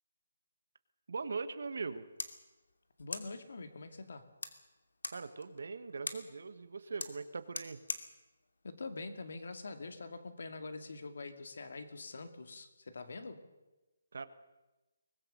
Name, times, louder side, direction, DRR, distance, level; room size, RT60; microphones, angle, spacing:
voice 1, 1.1-2.1 5.1-7.8 14.1-14.3, right 4 dB, 50° right, 12 dB, 1.4 m, -41 dB
sound 1, 1.8-9.8, left 3 dB, 90° left, 2.7 m, -47 dB
voice 2, 3.0-4.3 8.6-13.4, left 3 dB, 50° left, 9 dB, 2.3 m, -45 dB
24.0 x 20.0 x 6.7 m, 1.1 s
hypercardioid pair, 180°, 0 cm